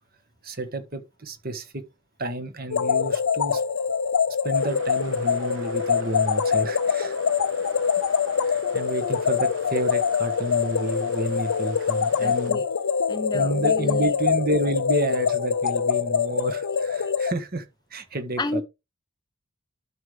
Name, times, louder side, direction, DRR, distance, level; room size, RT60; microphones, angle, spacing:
voice 1, 0.4-1.8 2.2-3.6 4.4-7.2 8.4-12.6 13.3-17.6 17.9-18.6, right 2 dB, 40° right, 1.5 m, -30 dB
sound 1, 2.7-17.3, left 6 dB, 85° left, 0.5 m, -24 dB
sound 2, 4.5-12.5, right 2 dB, 60° right, 1.4 m, -45 dB
voice 2, 12.2-12.7 13.1-14.1 18.4-18.6, left 3 dB, 20° left, 0.4 m, -30 dB
12.0 x 4.9 x 3.4 m
head